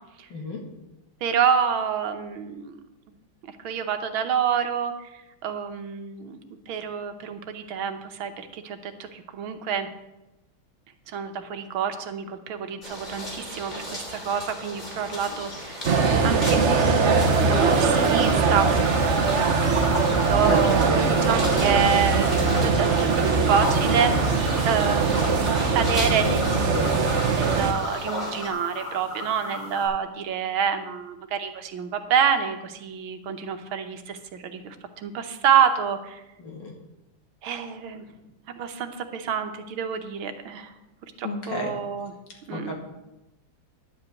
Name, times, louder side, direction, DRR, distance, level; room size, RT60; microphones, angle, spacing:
voice 1, 0.3-0.6 20.5-20.9 36.4-36.7 41.2-41.7 42.5-42.7, left 2 dB, 60° left, 1 dB, 2.5 m, -31 dB
voice 2, 1.2-2.8 3.4-9.9 11.1-15.9 16.2-18.7 20.2-24.3 24.7-36.2 37.4-38.1 38.5-40.7 41.2-42.1 42.5-42.7, right 7 dB, 80° right, 7 dB, 1.8 m, -27 dB
sound 1, 12.8-28.5, equal, 20° left, 2.7 m, -35 dB
sound 2, 15.8-27.7, right 4 dB, 50° right, 0.9 m, -21 dB
sound 3, 17.3-29.9, left 1 dB, 90° left, 6.2 m, -36 dB
11.0 x 5.4 x 8.4 m, 0.99 s
omnidirectional pair, 2.2 m